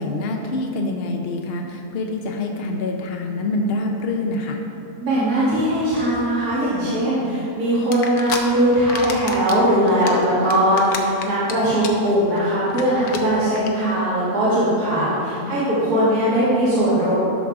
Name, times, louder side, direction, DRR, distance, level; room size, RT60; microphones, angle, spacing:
voice 1, 0.0-4.6 14.9-15.6, left 2 dB, 55° left, 2 dB, 0.7 m, -26 dB
voice 2, 5.0-17.1, right 1 dB, 75° right, -11 dB, 2.7 m, -20 dB
sound 1, 7.9-8.4 8.7-9.6 9.9-11.5 11.8-12.1 12.4-12.5 12.7-12.8 13.1-13.2 13.6-13.7, left 6 dB, 80° left, 1.3 m, -29 dB
12.0 x 6.3 x 3.5 m, 2.8 s
omnidirectional pair, 1.7 m